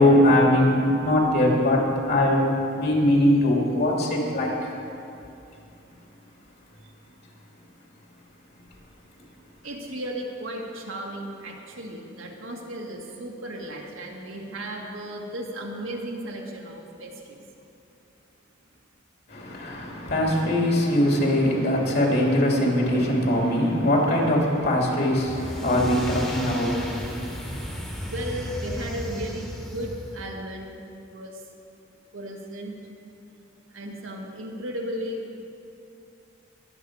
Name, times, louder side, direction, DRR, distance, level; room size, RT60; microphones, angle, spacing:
voice 1, 0.0-1.8 2.1-2.5 2.7-4.7 19.3-27.7, left 1 dB, 55° left, -2 dB, 2.8 m, -21 dB
voice 2, 9.6-17.4 28.0-30.7 31.1-31.4 32.1-32.8 33.7-35.5, equal, 75° right, -1 dB, 2.0 m, -35 dB
sound 1, 25.1-30.4, equal, 5° left, 1.5 m, -34 dB
21.5 x 8.5 x 4.9 m, 2.6 s
head